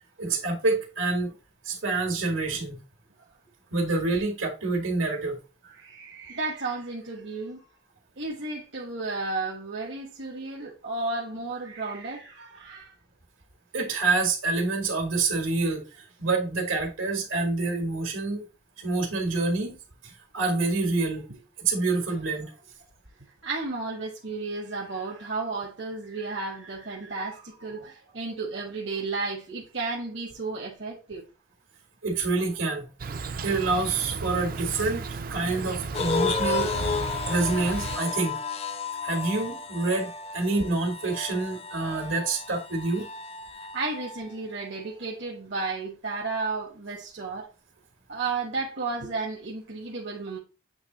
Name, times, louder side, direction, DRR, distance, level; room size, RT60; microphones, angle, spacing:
voice 1, 0.2-1.3 1.6-2.8 3.7-5.4 13.7-18.4 18.8-19.7 20.0-21.3 21.6-22.5 32.0-32.9 33.4-36.7 37.0-38.4 39.0-43.1, right 3 dB, 90° right, 2.1 m, -27 dB
voice 2, 5.6-7.6 8.2-12.9 21.3-21.4 23.4-31.2 43.5-47.5 48.1-50.4, right 3 dB, 70° right, 1.3 m, -33 dB
Insect, 33.0-38.0, right 4 dB, 45° right, 0.4 m, -34 dB
sound 1, 35.9-44.3, left 5 dB, 30° left, 0.4 m, -33 dB
8.3 x 3.0 x 3.9 m
head